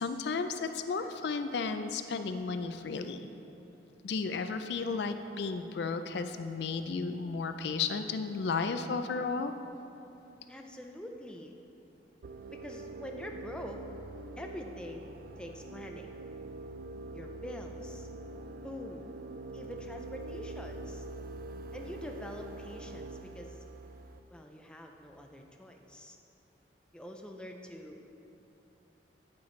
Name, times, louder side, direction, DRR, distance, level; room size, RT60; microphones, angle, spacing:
voice 1, 0.0-3.3 4.0-9.5, left 4 dB, 65° left, 9 dB, 0.4 m, -33 dB
voice 2, 10.5-11.6 12.5-13.8 14.4-15.1 15.4-16.2 17.1-18.1 18.6-19.1 19.5-21.1 21.7-23.6 24.3-26.2 26.9-28.1, left 1 dB, 5° left, 2 dB, 0.5 m, -45 dB
sound 1, 12.2-24.2, right 2 dB, 50° right, 0.3 m, -44 dB
8.7 x 8.6 x 3.2 m, 2.9 s
head